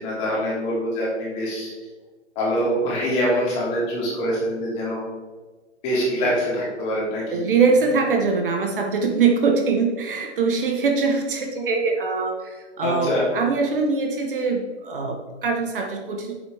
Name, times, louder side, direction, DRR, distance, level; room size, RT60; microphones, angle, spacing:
voice 1, 0.0-1.7 2.3-5.0 5.8-7.4 12.8-13.3, equal, 20° left, -6 dB, 3.1 m, -24 dB
voice 2, 7.3-16.4, right 4 dB, 45° right, 3 dB, 1.3 m, -22 dB
9.3 x 8.2 x 3.6 m, 1.3 s
hypercardioid pair, 160°, 36 cm